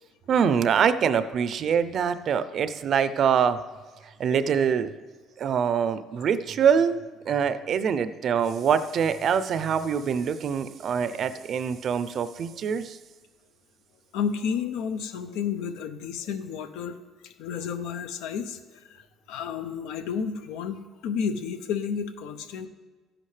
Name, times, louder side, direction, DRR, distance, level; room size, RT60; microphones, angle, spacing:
voice 1, 0.3-3.6 4.0-4.9 5.4-7.0 7.3-13.0, right 7 dB, 50° right, 13 dB, 0.5 m, -24 dB
voice 2, 14.1-17.0 17.2-22.7, left 7 dB, 85° left, 9 dB, 0.7 m, -31 dB
13.0 x 10.0 x 3.3 m, 1.3 s
cardioid pair, 110°, 0 cm